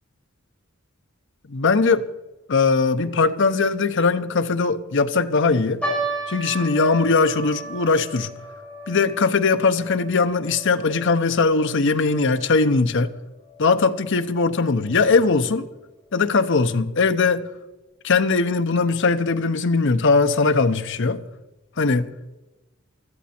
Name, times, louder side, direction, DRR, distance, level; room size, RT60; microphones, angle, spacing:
voice 1, 1.5-2.0 2.5-5.8 6.3-8.3 8.9-13.1 13.6-15.7 16.1-17.5 18.0-21.2 21.8-22.1, left 4 dB, 60° left, 10 dB, 0.8 m, -20 dB
sound 1, 5.8-12.3 12.6-12.7 13.4-13.7 14.3-14.4 14.8-14.9, right 2 dB, 5° left, 5.6 m, -34 dB
16.0 x 13.0 x 4.4 m, 1.1 s
head